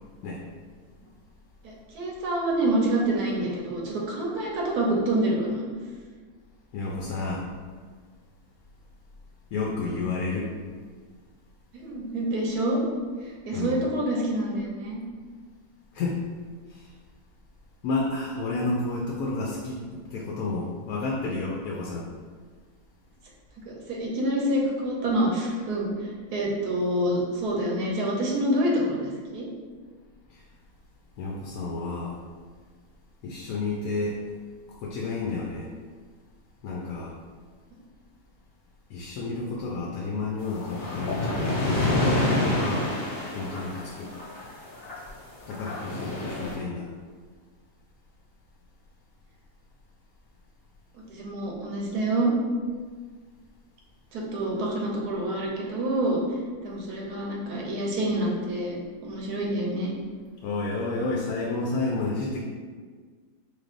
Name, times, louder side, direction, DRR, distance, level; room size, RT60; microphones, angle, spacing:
voice 1, 1.6-5.6 11.7-12.9 13.2-15.0 23.7-29.5 46.0-46.4 50.9-52.3 54.1-56.2 56.6-58.8 59.0-59.9, right 1 dB, 85° right, -2 dB, 1.3 m, -27 dB
voice 2, 6.7-7.5 9.5-10.5 13.5-13.8 15.9-16.2 16.7-16.9 17.8-22.1 30.3-30.4 31.2-32.2 33.2-34.2 34.8-35.7 36.6-37.1 38.9-41.4 42.2-42.8 43.3-44.1 45.5-46.9 60.4-62.4, left 3 dB, 75° left, -2 dB, 1.0 m, -30 dB
sound 1, 40.4-45.1 45.4-46.6, left 1 dB, 50° left, 0.9 m, -27 dB
4.4 x 3.3 x 2.5 m, 1.6 s
omnidirectional pair, 1.6 m